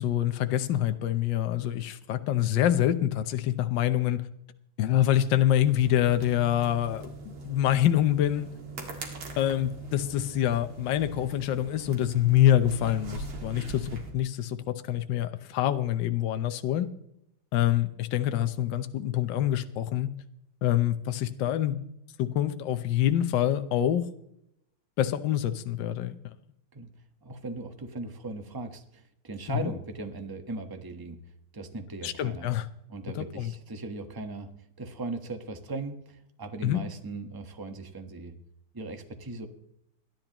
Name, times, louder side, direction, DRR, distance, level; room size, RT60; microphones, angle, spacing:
voice 1, 0.0-4.2 4.8-8.5 9.4-16.9 17.5-20.1 20.6-21.8 22.2-24.1 25.0-26.2 29.5-29.7 32.0-32.7 33.1-33.5 36.6-36.8, left 12 dB, 65° left, 10 dB, 1.4 m, -26 dB
sound 1, 5.6-14.1, right 3 dB, 80° right, 2.9 m, -41 dB
voice 2, 27.2-31.2 31.5-32.5 32.9-34.5 34.8-38.3 38.7-39.5, right 3 dB, 15° right, 5 dB, 0.8 m, -38 dB
25.0 x 10.5 x 3.0 m, 0.77 s
omnidirectional pair, 2.3 m